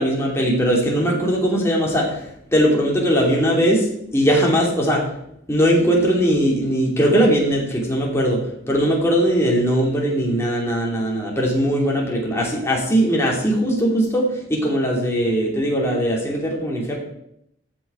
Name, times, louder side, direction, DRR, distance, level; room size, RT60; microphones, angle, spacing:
voice 1, 0.0-2.2 2.5-3.9 4.1-5.1 5.5-17.0, equal, 15° left, -3 dB, 2.8 m, -20 dB
14.0 x 6.2 x 4.5 m, 0.76 s
head